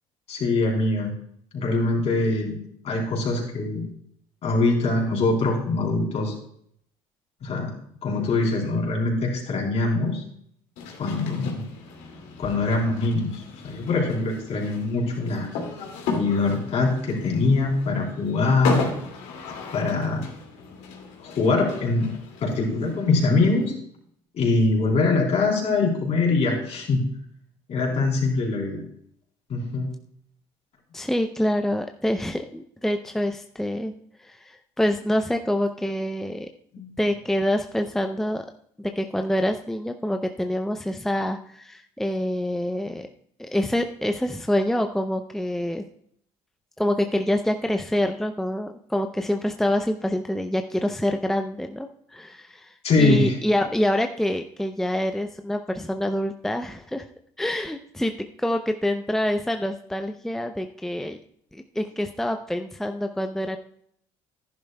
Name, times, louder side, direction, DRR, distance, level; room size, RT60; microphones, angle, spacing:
voice 1, 0.3-1.1 1.5-2.6 2.8-3.9 4.4-6.3 7.4-7.7 8.0-10.2 11.0-11.6 12.4-15.5 16.1-18.8 19.7-20.2 21.2-22.1 22.4-23.7 24.3-27.0 27.7-28.8 29.5-29.9 36.7-37.0 52.8-53.4, left 3 dB, 55° left, -1 dB, 3.7 m, -23 dB
sound 1, 10.8-23.7, left 4 dB, 80° left, 2.3 m, -35 dB
voice 2, 30.9-33.9 34.2-36.5 37.0-38.5 38.8-43.1 43.4-45.8 46.8-57.1 57.4-61.2 61.5-63.6, left 1 dB, 5° left, 6 dB, 0.6 m, -26 dB
11.0 x 10.5 x 2.3 m, 0.68 s
supercardioid pair, 75°, 13 cm